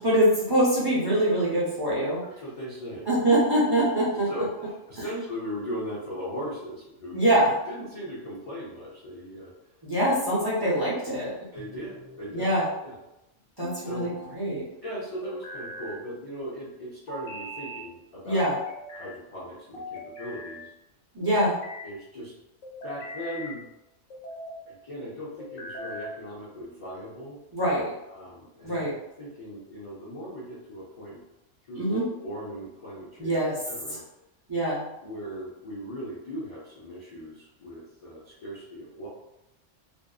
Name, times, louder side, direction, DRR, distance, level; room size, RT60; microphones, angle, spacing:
voice 1, 0.0-2.2 3.1-4.3 7.1-7.5 9.8-11.3 12.3-12.6 13.6-14.6 18.3-18.5 21.1-21.5 27.5-27.9 28.6-28.9 31.8-32.0 33.2-33.6 34.5-34.8, right 1 dB, 25° right, -8 dB, 0.5 m, -24 dB
voice 2, 2.2-3.1 4.3-7.2 7.7-9.5 11.5-12.5 12.8-13.0 13.8-14.1 14.8-18.5 18.9-20.7 21.8-22.3 22.8-23.6 24.7-27.4 28.1-28.9 29.2-31.2 31.7-33.4 33.7-34.0 35.0-39.1, equal, 55° left, -6 dB, 0.3 m, -38 dB
sound 1, 11.6-12.2 13.6-14.4 15.2-16.0 17.1-17.9 18.5-19.1 19.7-20.6 21.2-21.9 22.6-23.6 24.1-24.6 25.4-26.2, equal, 85° left, 1.0 m, -40 dB
2.6 x 2.4 x 2.3 m, 0.89 s
omnidirectional pair, 1.3 m